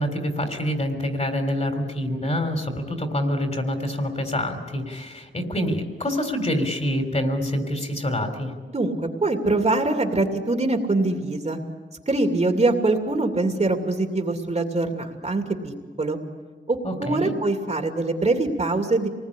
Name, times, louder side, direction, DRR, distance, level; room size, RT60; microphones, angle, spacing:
voice 1, 0.0-8.5 16.8-17.3, equal, 35° left, 6 dB, 3.6 m, -26 dB
voice 2, 8.7-11.6 12.1-15.7 16.0-16.2 16.7-19.1, right 2 dB, 35° right, 4 dB, 2.7 m, -23 dB
27.0 x 20.0 x 10.0 m, 1.4 s
wide cardioid pair, 125°, 19 cm